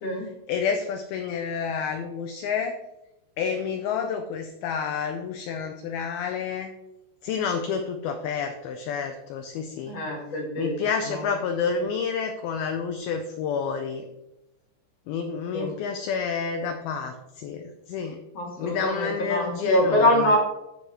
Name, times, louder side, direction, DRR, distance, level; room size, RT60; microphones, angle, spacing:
voice 1, 0.2-2.8 3.4-6.7 7.2-10.0 10.6-14.1 15.1-18.2 18.6-20.4, left 6 dB, 85° left, 6 dB, 2.2 m, -29 dB
voice 2, 9.9-10.8 15.5-15.7 18.3-20.4, equal, 50° left, 0 dB, 2.2 m, -24 dB
14.0 x 5.5 x 3.0 m, 0.92 s
omnidirectional pair, 5.1 m